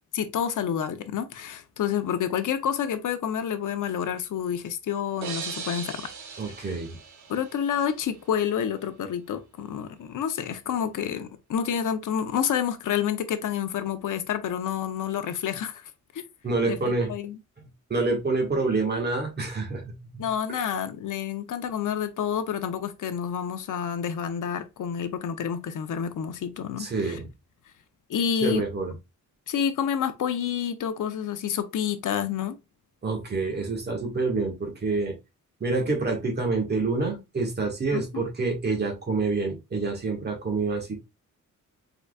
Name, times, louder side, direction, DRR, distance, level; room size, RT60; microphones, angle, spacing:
voice 1, 0.1-6.1 6.5-6.8 7.3-15.8 16.1-16.2 16.6-17.4 20.2-27.2 28.1-28.6 29.5-32.6 37.9-38.2, left 8 dB, 75° left, 0.8 m, -29 dB
sound 1, 5.2-8.0, right 6 dB, 65° right, 1.0 m, -38 dB
voice 2, 6.4-7.0 16.4-17.1 17.9-20.7 26.8-27.3 28.4-28.9 33.0-35.2 35.6-40.9, right 3 dB, 35° right, 1.6 m, -27 dB
4.5 x 4.0 x 2.3 m
wide cardioid pair, 150°, 31 cm